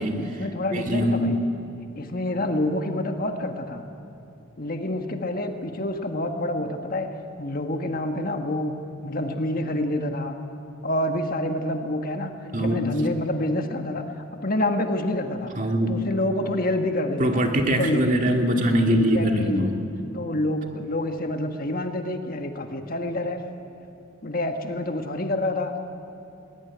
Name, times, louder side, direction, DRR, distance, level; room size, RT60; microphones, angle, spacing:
voice 1, 0.0-1.4 2.0-3.9 4.6-7.1 7.4-8.7 9.0-10.4 10.8-14.0 14.3-15.5 15.9-17.4 17.8-18.0 18.9-19.7 20.1-23.4 24.2-25.7, left 1 dB, 45° left, 5 dB, 1.5 m, -27 dB
voice 2, 0.7-1.4 12.5-13.0 15.6-16.0 17.2-19.8, equal, 40° right, 3 dB, 2.1 m, -22 dB
20.0 x 19.5 x 9.8 m, 2.7 s
head